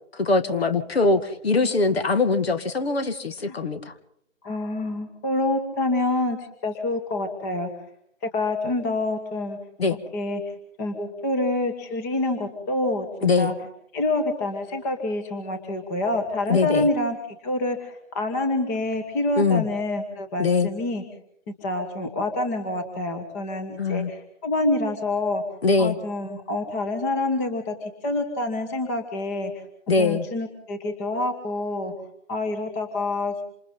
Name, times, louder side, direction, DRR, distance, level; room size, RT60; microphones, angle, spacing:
voice 1, 0.1-3.9 9.8-9.9 13.2-13.5 16.5-16.9 19.4-19.7 20.4-20.7 23.8-24.1 25.6-26.0 29.9-30.3, left 3 dB, 50° left, 10 dB, 2.2 m, -22 dB
voice 2, 4.4-7.7 8.2-9.6 10.1-10.4 10.8-13.5 13.9-17.2 17.4-21.0 21.6-25.4 25.8-29.6 30.0-31.9 32.3-33.4, left 2 dB, 10° left, 5 dB, 1.4 m, -27 dB
27.0 x 27.0 x 3.9 m, 0.69 s
figure-of-eight pair, 155°, 39 cm